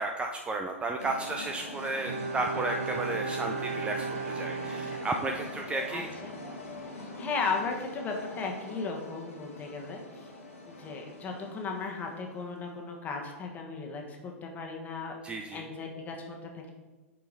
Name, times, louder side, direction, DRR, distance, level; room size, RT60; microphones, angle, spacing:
voice 1, 0.0-6.1 15.2-15.6, right 2 dB, 15° right, 3 dB, 0.5 m, -33 dB
sound 1, 1.0-12.8, left 2 dB, 80° left, 1.7 m, -42 dB
Bowed string instrument, 2.1-5.8 6.1-6.2, right 5 dB, 60° right, 0.7 m, -36 dB
voice 2, 5.9-6.3 7.2-10.0 10.7-15.2 15.5-16.7, left 4 dB, 20° left, 1 dB, 1.4 m, -36 dB
8.5 x 4.7 x 4.0 m, 1.2 s
figure-of-eight pair, 105°, 8 cm